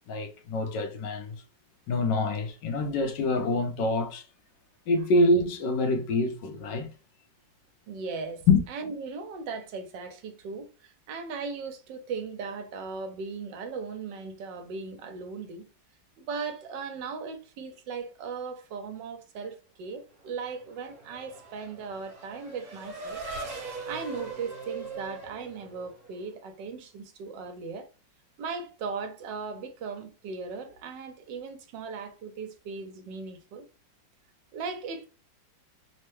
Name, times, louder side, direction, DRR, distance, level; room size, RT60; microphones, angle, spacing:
voice 1, 0.1-1.4 1.9-4.2 4.9-6.9 8.5-8.6, left 2 dB, 75° left, 1.3 m, -25 dB
voice 2, 7.9-8.4 8.7-15.7 16.2-23.2 23.9-27.9 28.4-33.6 34.5-35.1, right 5 dB, 75° right, 1.4 m, -38 dB
Race car auto racing / Accelerating revving vroom, 20.3-26.3, right 3 dB, 50° right, 1.4 m, -41 dB
3.5 x 2.1 x 3.0 m
omnidirectional pair, 2.0 m